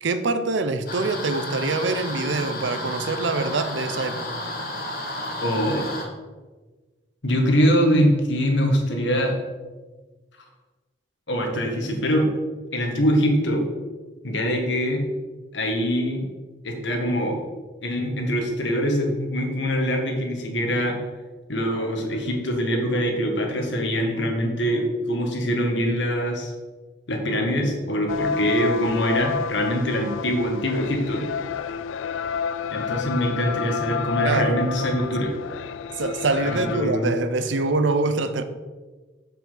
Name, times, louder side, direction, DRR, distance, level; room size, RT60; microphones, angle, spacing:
voice 1, 0.0-4.4 34.2-34.9 36.0-38.4, right 3 dB, 80° right, 10 dB, 0.7 m, -25 dB
sound 1, 0.9-6.0, left 1 dB, 50° left, 1.8 m, -32 dB
voice 2, 5.4-5.9 7.2-9.4 11.3-12.3 12.7-13.7 14.2-15.0 15.5-16.3 16.6-17.4 17.8-21.0 21.5-26.5 27.1-31.2 32.7-35.3 36.4-37.2, equal, 75° left, 2 dB, 1.7 m, -23 dB
sound 2, 28.1-36.8, left 7 dB, 90° left, 0.3 m, -30 dB
7.1 x 5.8 x 5.8 m, 1.3 s
head